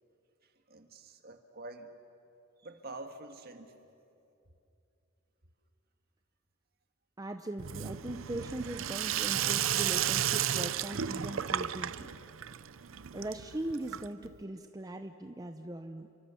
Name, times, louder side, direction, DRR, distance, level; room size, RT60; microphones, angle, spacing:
voice 1, 0.4-1.9 2.6-3.7, right 2 dB, 50° right, 6 dB, 1.8 m, -47 dB
voice 2, 7.2-12.1 13.1-16.1, right 1 dB, 20° right, 6 dB, 0.7 m, -40 dB
Sink (filling or washing), 7.6-14.4, right 10 dB, 70° right, 0.6 m, -33 dB
29.5 x 24.5 x 7.1 m, 2.7 s
head